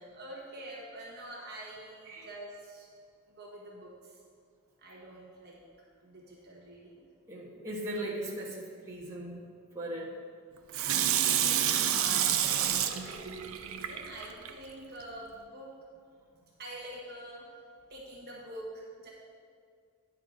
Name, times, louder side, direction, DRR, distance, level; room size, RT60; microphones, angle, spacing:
voice 1, 0.0-2.9 3.3-4.2 4.8-5.6 6.0-7.1 11.0-15.7 16.6-17.5 17.9-19.1, right 1 dB, 45° right, -3 dB, 1.2 m, -46 dB
voice 2, 7.3-9.4 9.7-10.1, right 1 dB, 15° right, -7 dB, 1.5 m, -38 dB
Water tap faucet / Sink (filling or washing), 10.7-14.5 15.0-15.1, right 10 dB, 65° right, 0.5 m, -29 dB
9.7 x 4.6 x 5.1 m, 2.1 s
head